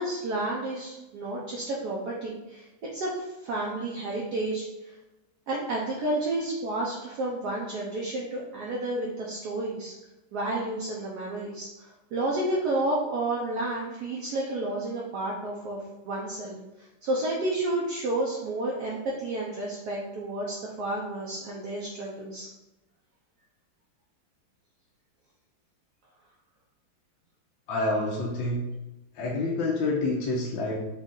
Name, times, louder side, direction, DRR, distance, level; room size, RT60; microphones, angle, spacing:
voice 1, 0.0-5.0 5.5-9.9 10.3-22.5, right 2 dB, 65° right, -3 dB, 1.1 m, -31 dB
voice 2, 27.7-28.6 29.1-30.7, left 2 dB, 75° left, -4 dB, 1.5 m, -27 dB
5.3 x 2.4 x 3.7 m, 1.0 s
omnidirectional pair, 2.2 m